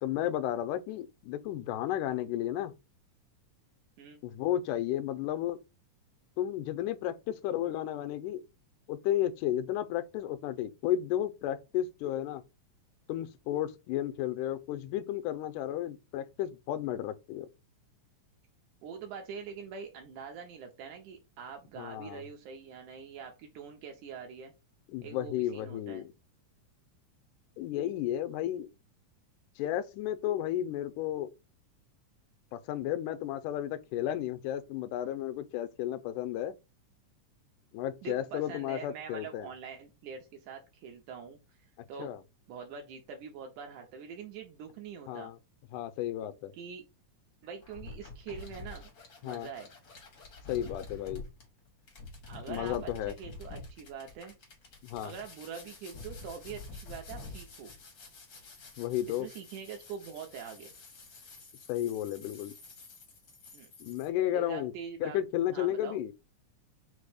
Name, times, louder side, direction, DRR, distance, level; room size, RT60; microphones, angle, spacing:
voice 1, 0.0-2.7 4.2-5.6 6.4-8.4 8.9-12.4 13.1-17.5 21.8-22.2 24.9-26.1 27.6-28.7 29.6-31.3 32.5-36.5 37.7-39.5 42.0-42.2 45.1-45.4 45.7-46.5 49.2-49.5 50.5-51.2 52.5-53.1 54.8-55.1 58.8-59.3 61.7-62.5 63.8-64.7 65.0-66.1, left 12 dB, 85° left, 2.0 m, -33 dB
voice 2, 18.8-24.5 25.0-26.0 38.0-41.6 41.9-42.1 42.5-45.3 46.5-46.8 47.4-48.9 49.2-49.7 52.3-54.3 55.0-57.7 59.1-60.7 63.5-63.7 64.3-65.2 65.5-66.0, right 6 dB, 80° right, 2.2 m, -44 dB
sound 1, 47.6-64.1, left 3 dB, 60° left, 1.0 m, -48 dB
5.2 x 2.1 x 4.8 m
omnidirectional pair, 3.6 m